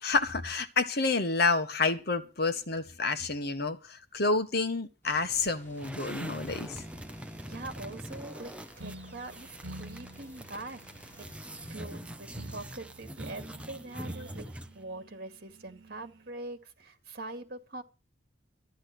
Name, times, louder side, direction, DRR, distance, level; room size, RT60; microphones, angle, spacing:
voice 1, 0.0-6.8, left 3 dB, 55° left, 1.5 m, -29 dB
sound 1, 5.0-11.7, right 1 dB, 15° left, 6.1 m, -56 dB
sound 2, 5.8-14.8, equal, 5° right, 1.0 m, -44 dB
voice 2, 7.4-10.8 11.2-11.3 11.7-17.8, right 2 dB, 55° right, 2.4 m, -43 dB
sound 3, 8.8-16.3, right 2 dB, 75° right, 1.4 m, -49 dB
14.0 x 10.0 x 6.1 m
head